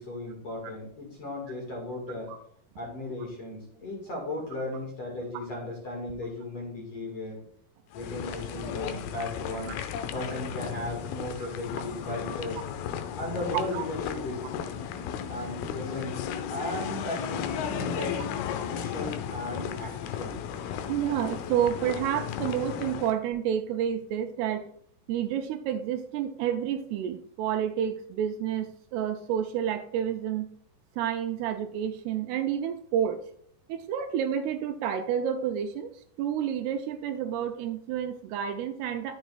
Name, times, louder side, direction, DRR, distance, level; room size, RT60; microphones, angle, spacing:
voice 1, 0.0-2.3 2.8-7.4 7.9-9.8 10.1-12.7 13.2-14.5 15.3-18.2 18.6-20.4, left 2 dB, 45° left, -2 dB, 2.5 m, -36 dB
sound 1, 7.9-23.1, left 8 dB, 80° left, 2.3 m, -35 dB
voice 2, 20.9-24.7 25.1-30.5 31.0-33.2 33.7-39.2, right 9 dB, 80° right, 5 dB, 2.5 m, -30 dB
11.0 x 7.0 x 2.4 m, 0.66 s
omnidirectional pair, 4.9 m